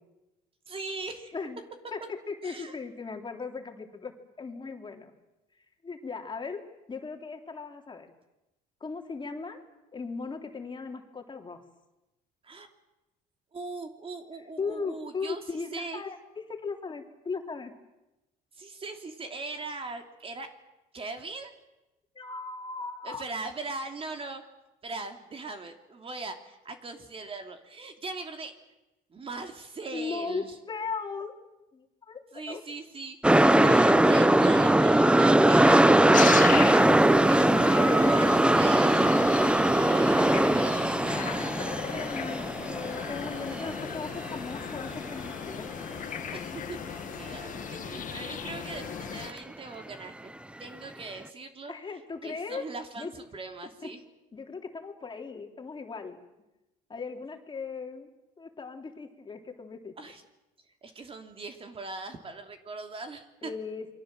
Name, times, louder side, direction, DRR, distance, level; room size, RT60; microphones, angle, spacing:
voice 1, 0.7-1.3 2.4-2.8 12.4-12.7 13.5-16.0 18.6-20.5 20.9-21.5 23.0-24.4 24.8-28.5 29.1-30.5 32.3-36.4 36.7-41.4 46.3-50.3 50.6-51.7 52.2-54.0 60.0-60.2 60.8-63.5, right 3 dB, 35° right, 5 dB, 3.0 m, -40 dB
voice 2, 1.9-4.1 4.4-5.1 5.8-6.6 6.9-8.1 8.8-9.6 9.9-11.6 14.6-16.2 16.5-17.7 22.1-23.2 29.9-31.3 31.7-32.2 32.5-32.6 37.5-38.5 41.9-45.7 47.9-48.0 51.7-52.6 53.0-53.1 53.8-53.9 54.3-56.2 56.9-58.1 58.4-59.9 63.4-63.9, left 4 dB, 30° left, 3 dB, 3.4 m, -37 dB
sound 1, 33.2-45.3 45.6-45.7, right 1 dB, 5° right, 0.9 m, -21 dB
sound 2, 36.1-49.3, left 8 dB, 50° left, 1.8 m, -36 dB
28.5 x 23.0 x 7.7 m, 0.98 s
cardioid pair, 110°, 17 cm